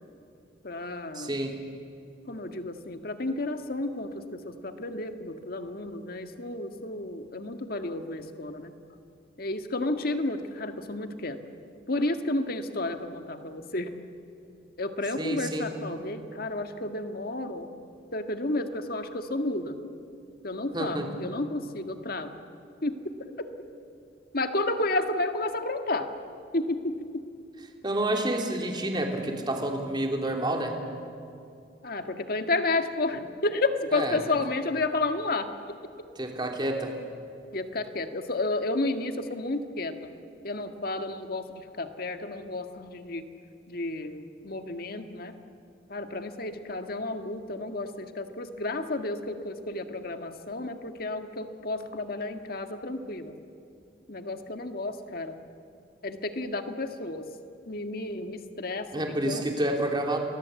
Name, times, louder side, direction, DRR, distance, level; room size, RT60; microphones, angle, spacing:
voice 1, 0.6-1.4 2.3-8.7 9.4-11.4 11.9-13.9 14.8-17.7 18.1-19.8 20.4-22.4 22.8-23.5 24.3-26.1 26.5-27.2 31.8-35.7 37.5-40.1 40.4-43.2 43.7-45.3 45.9-53.4 54.1-55.4 56.0-57.3 57.7-59.7, left 2 dB, 55° left, 7 dB, 1.7 m, -31 dB
voice 2, 1.1-1.5 15.2-15.7 20.7-21.1 27.8-30.7 33.9-34.2 36.2-36.9 58.9-60.2, right 1 dB, 25° right, 2 dB, 3.2 m, -29 dB
30.0 x 21.5 x 8.3 m, 2.5 s
head